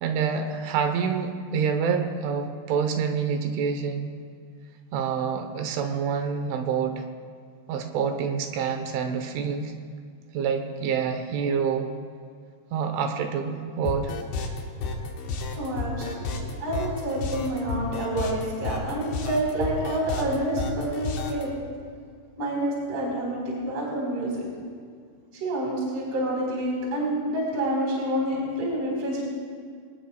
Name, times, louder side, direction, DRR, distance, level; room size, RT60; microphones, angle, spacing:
voice 1, 0.0-4.1 4.9-7.0 7.7-9.7 10.3-11.9 12.7-14.1, right 6 dB, 80° right, 6 dB, 3.3 m, -27 dB
sound 1, 13.9-21.4, left 3 dB, 65° left, 3.2 m, -31 dB
voice 2, 15.5-21.5 22.4-24.5 25.4-29.2, right 1 dB, 30° right, -4 dB, 4.9 m, -28 dB
23.5 x 20.0 x 2.3 m, 2.1 s
omnidirectional pair, 5.7 m